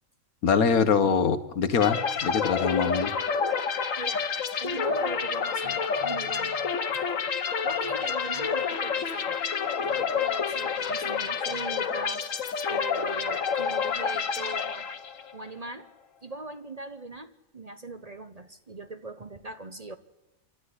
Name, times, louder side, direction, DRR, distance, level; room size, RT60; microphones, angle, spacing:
voice 1, 0.4-3.1, left 6 dB, 85° left, 11 dB, 1.7 m, -24 dB
sound 1, 1.8-15.4, left 6 dB, 65° left, 1.4 m, -29 dB
voice 2, 4.0-4.3 4.6-6.7 7.6-9.4 9.8-12.2 12.6-14.9 15.3-15.9 16.2-20.0, right 2 dB, 30° right, 9 dB, 0.9 m, -40 dB
27.5 x 12.5 x 9.8 m, 1.0 s
omnidirectional pair, 1.5 m